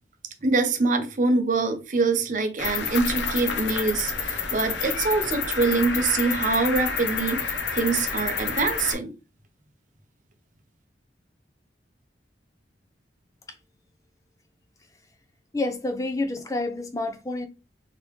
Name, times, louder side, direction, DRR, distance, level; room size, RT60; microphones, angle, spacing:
voice 1, 0.4-9.1, right 3 dB, 45° right, 0.6 m, -24 dB
Cricket, 2.6-8.9, left 5 dB, 80° left, 0.7 m, -29 dB
voice 2, 15.5-17.5, left 2 dB, 20° left, 0.5 m, -28 dB
3.2 x 2.9 x 3.1 m
head